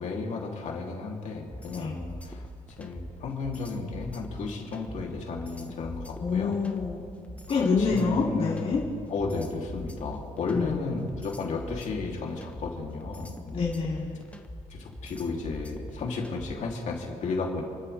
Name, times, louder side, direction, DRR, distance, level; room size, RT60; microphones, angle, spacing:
voice 1, 0.0-2.5 2.8-6.6 7.5-13.7 14.7-17.6, left 4 dB, 60° left, -1 dB, 3.0 m, -33 dB
sound 1, 1.5-16.7, left 1 dB, 10° left, 1.2 m, -43 dB
voice 2, 6.2-7.1 7.5-8.8 10.5-11.0 13.5-14.3, left 4 dB, 45° left, -5 dB, 2.7 m, -27 dB
29.5 x 13.0 x 3.5 m, 2.3 s
cardioid pair, 125°, 14 cm